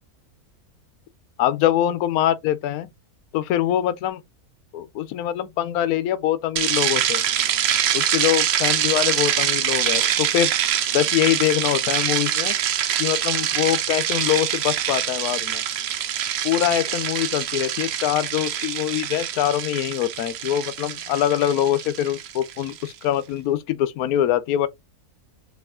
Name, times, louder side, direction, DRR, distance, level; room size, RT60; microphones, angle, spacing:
voice 1, 1.4-2.9 3.3-4.2 4.7-7.2 7.9-10.5 10.9-12.6 13.0-15.6 16.4-24.7, left 12 dB, 70° left, 1.1 m, -23 dB
sound 1, 6.6-22.8, right 10 dB, 65° right, 0.6 m, -24 dB
4.8 x 3.0 x 3.5 m
omnidirectional pair, 1.7 m